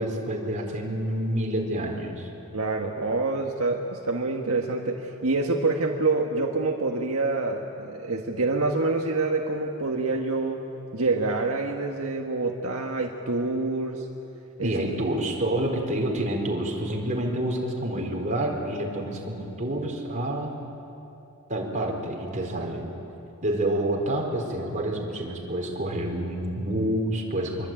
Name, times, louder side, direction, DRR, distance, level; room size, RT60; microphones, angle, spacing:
voice 1, 0.0-2.3 14.6-20.6 21.5-22.9 23.4-27.7, right 1 dB, 35° right, 0 dB, 4.3 m, -28 dB
voice 2, 2.5-10.6 10.9-14.0 14.6-14.7, right 3 dB, 70° right, 1 dB, 1.6 m, -26 dB
25.5 x 23.5 x 9.1 m, 2.9 s
head